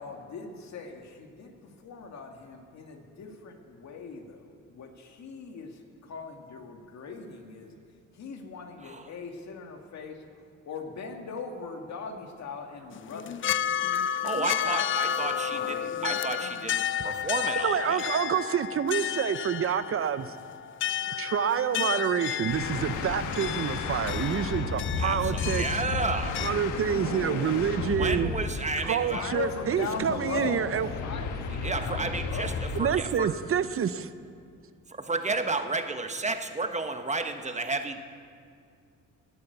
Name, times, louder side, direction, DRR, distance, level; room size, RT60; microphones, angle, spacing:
voice 1, 0.0-5.7 6.1-7.7 8.1-10.2 10.6-13.9 14.6-14.9 15.2-16.0 29.1-30.7 31.0-32.5, left 5 dB, 65° left, 3 dB, 2.2 m, -39 dB
voice 2, 8.8-9.1 14.2-18.0 25.0-26.4 27.8-29.2 31.5-33.3 34.9-38.0, right 3 dB, 25° right, 7 dB, 1.2 m, -32 dB
sound 1, 12.9-26.5, left 9 dB, 45° left, 0.4 m, -32 dB
voice 3, 17.6-20.4 21.2-25.7 26.4-28.3 28.8-30.9 32.8-34.1, right 8 dB, 45° right, 13 dB, 0.7 m, -27 dB
sound 2, 22.4-33.0, left 4 dB, 90° left, 1.4 m, -33 dB
18.5 x 9.5 x 8.1 m, 2.3 s
cardioid pair, 90°, 30 cm